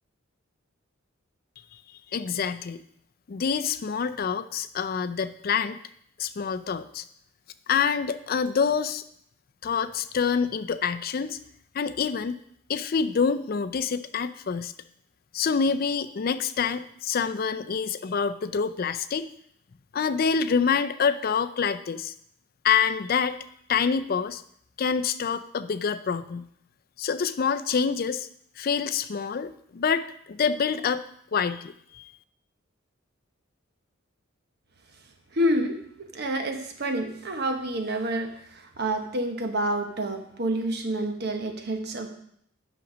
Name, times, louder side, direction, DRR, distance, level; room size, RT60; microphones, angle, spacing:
voice 1, 2.1-2.8 3.3-5.8 6.2-7.0 7.7-9.0 9.6-11.4 11.7-12.4 12.7-14.7 15.3-19.3 19.9-22.1 22.6-23.4 23.7-24.4 24.8-26.5 27.0-28.3 28.6-31.0 31.3-32.1, left 6 dB, 45° left, 11 dB, 0.4 m, -26 dB
voice 2, 35.3-42.1, right 1 dB, 55° right, 5 dB, 1.1 m, -28 dB
8.8 x 6.1 x 5.1 m, 0.69 s
head